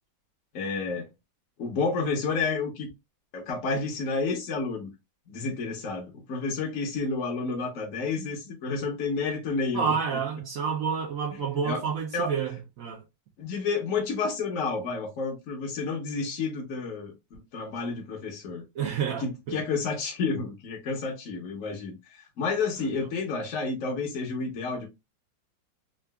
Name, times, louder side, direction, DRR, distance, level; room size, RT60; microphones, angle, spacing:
voice 1, 0.5-1.1 1.6-2.9 3.3-4.9 5.3-9.9 11.6-11.8 12.1-12.3 13.4-18.6 19.2-24.9, left 4 dB, 55° left, 1.0 m, -30 dB
voice 2, 9.7-13.0 18.8-19.6 22.9-23.0, right 6 dB, 70° right, 0.8 m, -29 dB
3.8 x 2.4 x 2.2 m
omnidirectional pair, 2.0 m